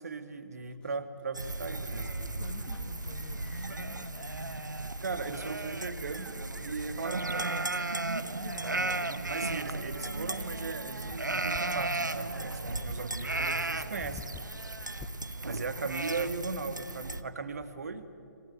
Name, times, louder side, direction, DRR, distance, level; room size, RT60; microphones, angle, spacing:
voice 1, 0.0-2.1 5.0-7.6 8.7-14.3 15.4-18.0, right 4 dB, 55° right, 10 dB, 1.7 m, -38 dB
sound 1, 0.7-5.2 7.6-7.7 9.7-15.5, left 6 dB, 10° left, 0.7 m, -53 dB
sound 2, 1.3-17.2, right 2 dB, 75° right, 1.1 m, -35 dB
voice 2, 2.2-4.6 8.3-9.3 16.1-16.8, left 6 dB, 35° left, 0 dB, 1.7 m, -49 dB
27.5 x 15.5 x 9.3 m, 2.6 s
figure-of-eight pair, 135°, 10 cm